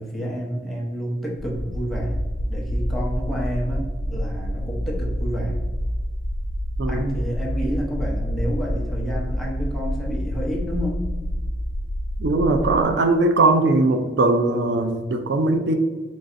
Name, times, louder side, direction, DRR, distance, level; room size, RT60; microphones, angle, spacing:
voice 1, 0.0-2.2 2.5-5.6 6.9-11.0, equal, ahead, -4 dB, 0.7 m, -29 dB
sound 1, 1.4-12.8, equal, 75° left, 0.4 m, -27 dB
voice 2, 12.2-15.7, right 2 dB, 75° right, 5 dB, 0.4 m, -20 dB
3.9 x 3.2 x 2.5 m, 1.4 s
head